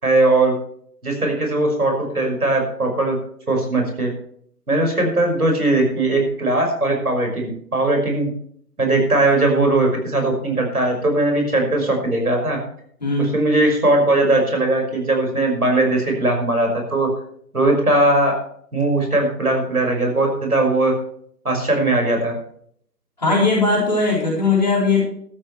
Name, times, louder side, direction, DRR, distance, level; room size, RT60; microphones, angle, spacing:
voice 1, 0.0-0.6 1.0-3.2 3.5-4.1 4.7-8.3 8.8-12.6 13.2-17.1 17.5-18.3 18.7-20.9 21.4-22.3, right 2 dB, 60° right, 2 dB, 5.7 m, -19 dB
voice 2, 13.0-13.3 23.2-25.0, left 3 dB, 25° left, -3 dB, 4.0 m, -18 dB
15.5 x 13.0 x 3.3 m, 0.64 s
figure-of-eight pair, 170°, 49 cm